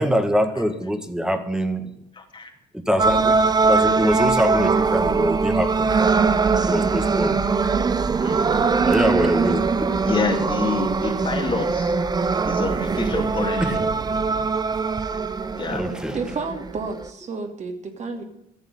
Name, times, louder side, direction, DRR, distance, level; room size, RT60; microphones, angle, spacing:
voice 1, 0.0-1.9 2.7-3.4 3.7-6.0 6.7-7.4 8.8-9.6 13.6-13.7 15.7-16.2, equal, 5° right, 9 dB, 1.8 m, -23 dB
voice 2, 2.1-2.5 8.2-8.4 10.0-12.0 12.4-13.8 15.5-15.8, left 4 dB, 30° left, 4 dB, 2.5 m, -27 dB
sound 1, 3.0-17.1, right 4 dB, 25° right, 0.8 m, -21 dB
voice 3, 16.1-18.2, right 4 dB, 45° right, 5 dB, 2.8 m, -31 dB
14.0 x 7.1 x 10.0 m, 0.79 s
cardioid pair, 110°, 17 cm